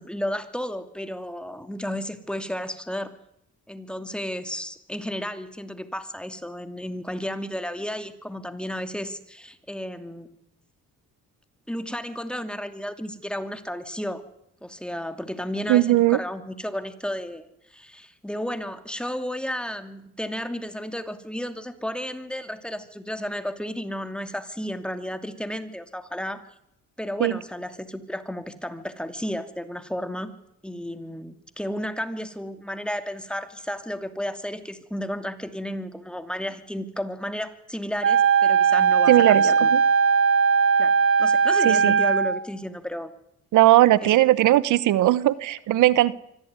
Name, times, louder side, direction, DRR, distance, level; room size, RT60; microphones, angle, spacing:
voice 1, 0.0-3.1 3.7-10.3 11.7-14.2 14.6-26.4 27.0-30.3 30.6-39.7 40.8-43.1 44.0-44.1, equal, 5° left, 8 dB, 2.7 m, -33 dB
voice 2, 15.7-16.2 27.2-27.3 39.1-39.8 41.6-42.0 43.5-46.1, right 15 dB, 85° right, 17 dB, 1.0 m, -18 dB
Wind instrument woodwind instrument, 38.0-42.4, right 6 dB, 45° right, 1.4 m, -19 dB
25.0 x 15.5 x 9.6 m, 0.78 s
cardioid pair, 90°, 30 cm